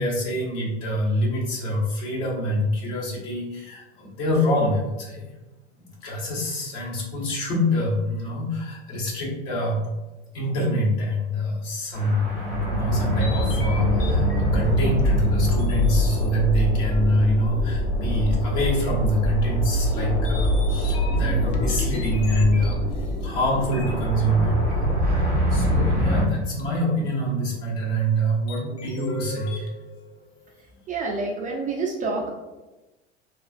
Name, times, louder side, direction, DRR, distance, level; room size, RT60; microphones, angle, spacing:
voice 1, 0.0-5.3 6.0-9.9 10.3-12.4 12.7-25.2 25.5-29.7, equal, 60° left, -4 dB, 1.2 m, -25 dB
sound 1, 11.9-26.2, equal, 90° left, 1.2 m, -24 dB
sound 2, 13.2-16.6 18.3-18.4 18.7-18.8 19.7-23.3 23.7-25.6 26.6-26.7 28.5-30.6, left 2 dB, 45° left, 0.6 m, -38 dB
voice 2, 30.9-32.3, right 3 dB, 25° right, -1 dB, 0.4 m, -27 dB
3.0 x 2.3 x 2.4 m, 1.1 s
hypercardioid pair, 90°, 34 cm